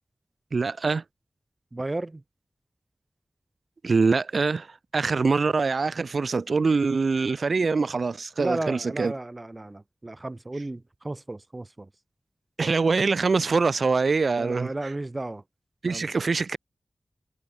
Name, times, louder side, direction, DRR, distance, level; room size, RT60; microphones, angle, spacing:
voice 1, 0.5-1.0 3.8-9.1 12.6-14.7 15.8-16.6, right 4 dB, 80° right, 0.8 m, -24 dB
voice 2, 1.7-2.2 8.4-11.9 14.4-15.4 15.9-16.1, right 2 dB, 35° right, 2.2 m, -34 dB
wide cardioid pair, 65°, 0 cm